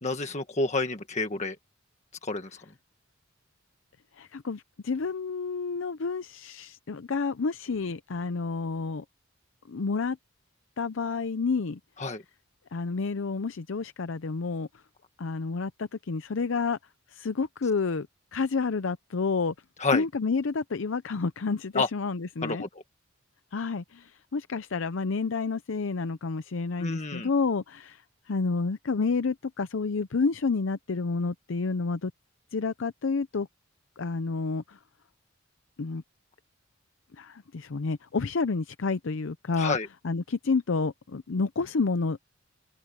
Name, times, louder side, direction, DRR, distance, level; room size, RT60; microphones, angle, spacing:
voice 1, 0.0-1.6 2.2-2.6 12.0-12.2 19.8-20.0 21.7-21.9 22.4-22.8 26.8-27.3 39.6-39.9, left 3 dB, 35° left, 1.5 m, -29 dB
voice 2, 4.2-9.0 9.7-10.2 10.8-11.8 12.7-14.7 15.2-16.8 17.1-18.1 18.3-19.5 19.9-22.6 23.5-28.0 28.3-32.1 32.5-33.5 34.0-34.8 35.8-36.0 37.2-39.8 40.0-42.2, left 4 dB, 65° left, 0.6 m, -29 dB
open air
head